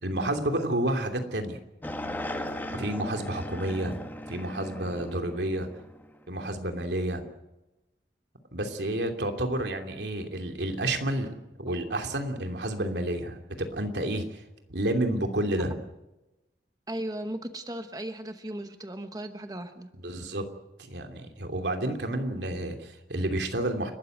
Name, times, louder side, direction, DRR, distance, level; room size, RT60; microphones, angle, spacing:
voice 1, 0.0-1.6 2.7-5.7 6.3-7.2 8.5-11.3 11.6-14.4 14.7-15.8 20.0-20.4 20.8-23.9, right 1 dB, 80° right, 4 dB, 2.9 m, -30 dB
sound 1, 1.8-6.2, left 1 dB, 10° left, 1.6 m, -37 dB
voice 2, 16.9-19.9, right 1 dB, 20° right, 7 dB, 1.1 m, -36 dB
30.0 x 13.0 x 8.0 m, 0.99 s
head